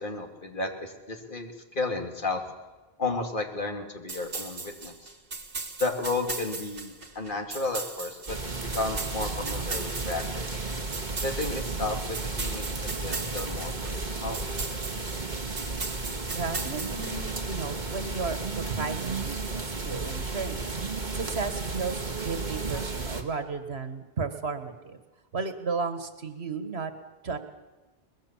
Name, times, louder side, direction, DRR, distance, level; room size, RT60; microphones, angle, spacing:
voice 1, 0.0-2.4 3.0-5.1 5.8-10.5 11.2-12.7 13.0-14.4, left 3 dB, 55° left, 3 dB, 2.7 m, -33 dB
sound 1, 4.1-17.6, right 4 dB, 65° right, 2.0 m, -38 dB
sound 2, 8.3-23.2, right 3 dB, 45° right, 2.0 m, -33 dB
voice 2, 16.3-25.0 25.3-26.9 27.2-27.4, right 4 dB, 85° right, 9 dB, 1.9 m, -34 dB
23.5 x 20.5 x 7.3 m, 1.2 s
omnidirectional pair, 1.1 m